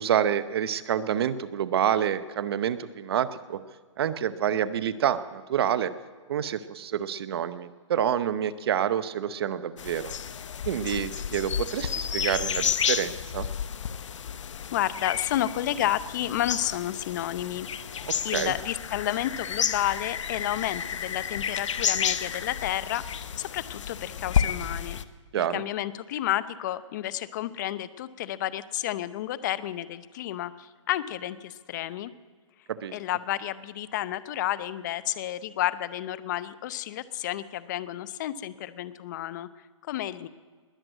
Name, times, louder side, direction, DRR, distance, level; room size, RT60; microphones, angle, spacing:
voice 1, 0.0-3.6 4.0-5.9 6.3-10.1 10.7-13.5 18.1-18.5 25.3-25.6 32.7-32.9, right 9 dB, 50° right, 14 dB, 0.8 m, -28 dB
sound 1, 9.8-25.0, left 8 dB, 70° left, 0.9 m, -31 dB
voice 2, 14.7-17.7 18.2-25.0 25.3-32.1 32.9-40.3, left 13 dB, 35° left, 16 dB, 0.7 m, -31 dB
20.5 x 7.8 x 9.0 m, 1.5 s
hypercardioid pair, 155°, 16 cm